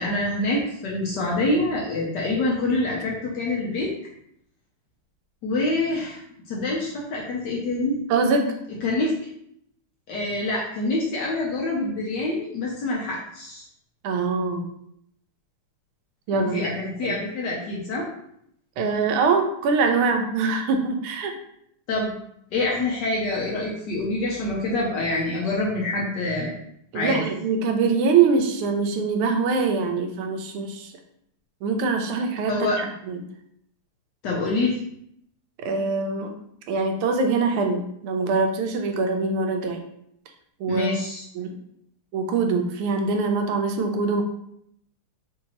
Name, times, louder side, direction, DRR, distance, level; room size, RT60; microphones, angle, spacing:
voice 1, 0.0-3.9 5.4-6.2 6.5-8.0 8.8-9.1 10.1-13.6 16.3-18.1 21.9-22.1 22.5-26.5 26.9-27.2 32.5-32.8 34.2-34.8 40.7-41.2, left 2 dB, 70° left, -3 dB, 1.1 m, -26 dB
voice 2, 8.1-8.6 14.0-14.7 16.3-16.7 17.0-17.2 18.8-21.3 26.9-30.9 31.6-33.2 35.6-36.4 36.7-39.8 40.6-40.9 41.3-41.5 42.1-44.2, right 4 dB, 85° right, 4 dB, 1.5 m, -23 dB
3.8 x 2.6 x 2.8 m, 0.72 s
omnidirectional pair, 2.4 m